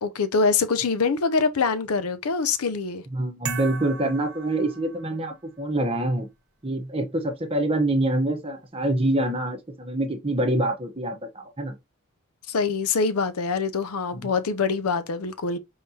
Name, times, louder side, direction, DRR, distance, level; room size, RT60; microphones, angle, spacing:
voice 1, 0.0-3.0 12.5-15.6, left 4 dB, 85° left, 0.6 m, -24 dB
voice 2, 3.1-6.3 6.6-11.8 14.1-14.3, right 1 dB, 25° right, 0.9 m, -26 dB
sound 1, 3.4-5.4, right 6 dB, 55° right, 1.0 m, -36 dB
5.3 x 3.5 x 2.8 m
head